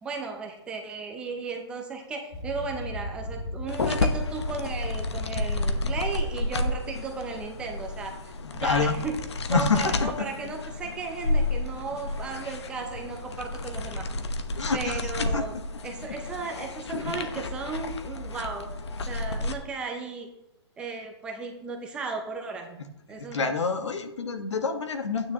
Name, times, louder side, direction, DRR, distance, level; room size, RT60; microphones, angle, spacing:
voice 1, 0.0-9.2 9.5-14.1 14.7-15.5 15.8-18.7 19.1-20.3 20.8-22.8 23.1-23.5, right 4 dB, 5° right, 2 dB, 0.6 m, -35 dB
sound 1, 2.3-14.3, left 1 dB, 35° left, 2.3 m, -42 dB
sound 2, 3.7-19.5, left 2 dB, 70° left, 1.1 m, -31 dB
voice 2, 8.4-9.0 9.5-10.1 14.6-15.0 15.3-15.4 23.1-25.3, left 4 dB, 90° left, 5 dB, 1.5 m, -27 dB
12.5 x 9.6 x 3.0 m, 0.86 s
hypercardioid pair, 170°, 15 cm